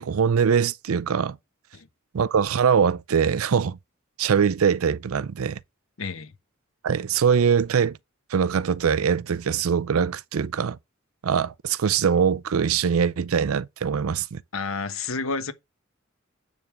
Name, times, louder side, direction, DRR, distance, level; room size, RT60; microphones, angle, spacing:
voice 1, 0.0-1.4 2.1-3.8 4.2-5.6 6.8-8.0 8.3-10.8 11.2-14.4, right 7 dB, 85° right, 0.5 m, -22 dB
voice 2, 6.0-6.3 14.5-15.5, left 4 dB, 75° left, 1.1 m, -30 dB
9.2 x 3.6 x 7.0 m
head